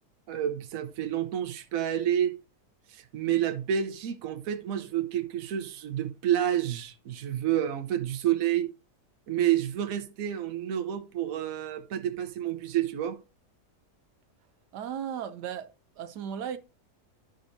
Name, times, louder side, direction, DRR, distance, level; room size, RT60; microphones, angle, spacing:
voice 1, 0.3-2.3 2.9-8.7 9.3-13.2, right 10 dB, 60° right, 1.2 m, -29 dB
voice 2, 14.7-15.7 16.0-16.6, right 8 dB, 85° right, 1.3 m, -35 dB
12.0 x 5.2 x 2.6 m
omnidirectional pair, 1.7 m